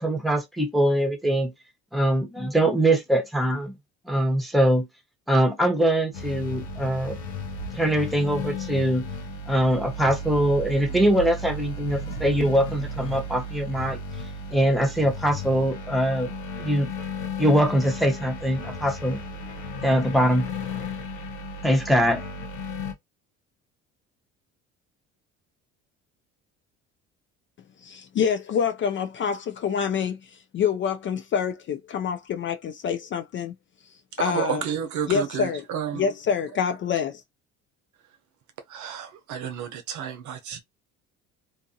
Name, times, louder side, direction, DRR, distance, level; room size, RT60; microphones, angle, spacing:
voice 1, 0.0-1.5 1.9-3.8 4.1-4.9 5.3-7.2 7.8-9.1 9.5-14.0 14.5-16.3 16.6-16.9 17.4-19.2 19.8-20.4 21.6-22.2, right 1 dB, ahead, 0.9 m, -22 dB
sound 1, 6.1-22.9, left 2 dB, 85° left, 0.8 m, -34 dB
voice 2, 27.8-30.2 30.5-33.5 34.2-34.6 35.1-35.6 35.9-37.2, left 7 dB, 40° left, 0.4 m, -26 dB
voice 3, 34.1-36.1 38.7-40.6, right 8 dB, 60° right, 0.7 m, -31 dB
2.6 x 2.5 x 2.6 m
supercardioid pair, 70°, 33 cm